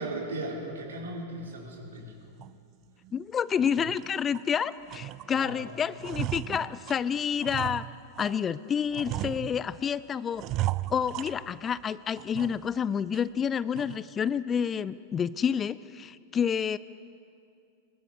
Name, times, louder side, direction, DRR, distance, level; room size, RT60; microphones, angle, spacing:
voice 1, 0.0-2.4 5.3-5.7, right 2 dB, 65° right, 0 dB, 4.3 m, -37 dB
sound 1, 2.4-2.6 3.0-3.2 3.6-4.5 4.9-5.5 5.8-8.4 8.9-9.9 10.4-11.8 12.2-12.8 13.1-13.2 13.7-14.1, right 15 dB, 35° right, 0.5 m, -36 dB
voice 2, 3.1-7.9 8.2-10.4 10.9-16.8, left 7 dB, 25° left, 18 dB, 0.5 m, -29 dB
24.0 x 21.5 x 6.6 m, 2.4 s
figure-of-eight pair, 90°, 0 cm